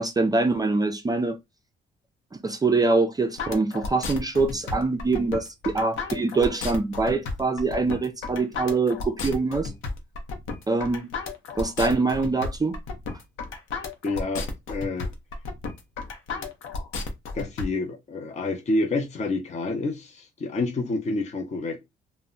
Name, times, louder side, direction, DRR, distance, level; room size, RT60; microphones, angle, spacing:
voice 1, 0.0-1.4 2.4-9.7 10.7-11.1 11.6-12.7, right 3 dB, 20° right, 0.3 m, -24 dB
sound 1, 3.4-17.7, left 3 dB, 80° left, 0.7 m, -33 dB
voice 2, 14.0-15.1 16.3-16.5 17.3-21.8, left 2 dB, 35° left, 0.6 m, -28 dB
2.1 x 2.0 x 3.7 m
cardioid pair, 90°, 20 cm